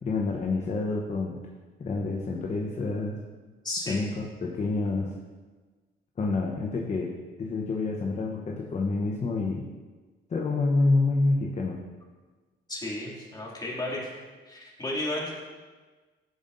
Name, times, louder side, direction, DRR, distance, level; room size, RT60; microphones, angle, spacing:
voice 1, 0.0-1.4 1.8-3.2 3.9-5.1 6.2-7.1 7.4-9.7 10.3-11.8, left 3 dB, 35° left, 0 dB, 0.9 m, -28 dB
voice 2, 3.6-4.0 12.7-14.0 14.5-15.3, left 1 dB, 20° left, -4 dB, 2.5 m, -33 dB
14.0 x 5.2 x 2.6 m, 1.3 s
cardioid pair, 90°, 20 cm